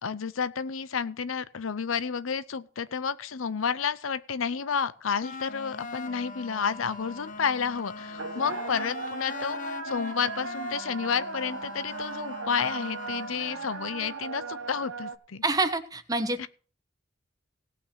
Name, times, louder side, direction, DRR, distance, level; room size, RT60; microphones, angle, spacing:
voice 1, 0.0-15.4 16.4-16.5, left 6 dB, 90° left, 15 dB, 0.7 m, -31 dB
sound 1, 5.2-14.0, left 3 dB, 40° left, 0.9 m, -41 dB
sound 2, 6.6-15.2, right 4 dB, 80° right, 1.2 m, -38 dB
voice 2, 15.4-16.5, right 2 dB, 20° right, 9 dB, 1.1 m, -27 dB
17.0 x 5.9 x 5.8 m, 0.39 s
head